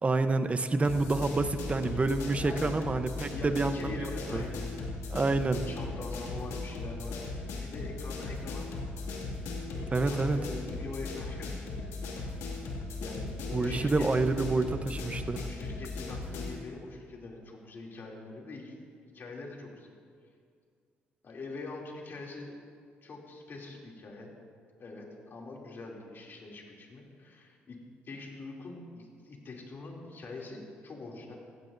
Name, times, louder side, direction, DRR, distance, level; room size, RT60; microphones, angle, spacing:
voice 1, 0.0-4.4 5.1-5.6 9.9-10.4 13.5-15.5, right 3 dB, 30° right, 10 dB, 0.8 m, -28 dB
sound 1, 0.8-16.6, left 3 dB, 90° left, 2.3 m, -37 dB
voice 2, 2.4-2.8 3.3-4.8 5.5-8.9 10.0-12.2 12.6-14.6 15.4-18.8 19.1-19.9 21.2-22.5 23.0-24.3 24.8-27.8 28.0-31.3, left 3 dB, 55° left, -2 dB, 2.9 m, -44 dB
16.0 x 16.0 x 2.7 m, 2.1 s
supercardioid pair, 70°, 5 cm